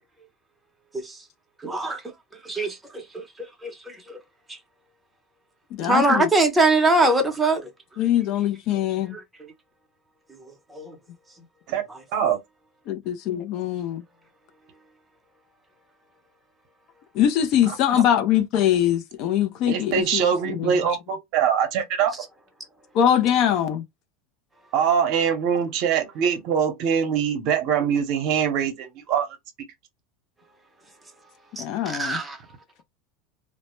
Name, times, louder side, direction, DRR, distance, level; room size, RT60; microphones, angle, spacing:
voice 1, 1.6-2.0 2.4-4.2 4.5-4.6 5.8-7.7 9.1-9.2 10.7-11.0 31.6-32.4, right 2 dB, 10° right, 0.7 m, -23 dB
voice 2, 5.8-6.3 8.0-9.2 12.9-14.0 17.1-20.7 22.9-23.8 31.6-32.2, left 10 dB, 55° left, 0.4 m, -22 dB
voice 3, 17.7-18.0 19.7-22.1 24.7-29.3, right 8 dB, 60° right, 0.7 m, -23 dB
2.1 x 2.0 x 2.9 m
supercardioid pair, 125°, 0 cm